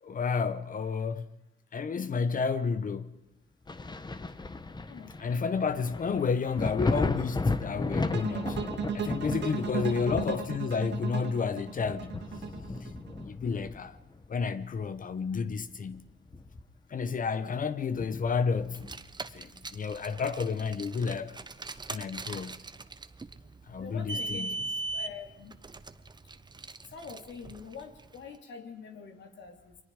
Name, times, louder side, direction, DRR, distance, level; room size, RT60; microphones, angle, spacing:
voice 1, 0.0-1.3 1.7-3.1 5.2-12.2 12.8-12.9 13.2-14.0 14.3-16.1 16.9-18.9 19.3-21.4 21.9-22.6 23.7-24.6, left 5 dB, 45° left, 1.0 m, -31 dB
Thunder, 3.7-15.0 15.4-16.9 17.3-17.4 17.9-19.2 20.7-20.8, left 3 dB, 20° left, 1.3 m, -35 dB
sound 1, 8.1-13.2, right 6 dB, 65° right, 2.3 m, -36 dB
voice 2, 9.8-10.2 23.8-24.6 24.9-25.5 26.9-29.8, left 5 dB, 65° left, 3.4 m, -45 dB
Car, 18.7-28.2, right 3 dB, 20° right, 1.0 m, -40 dB
28.5 x 23.0 x 5.1 m
cardioid pair, 90°, 20 cm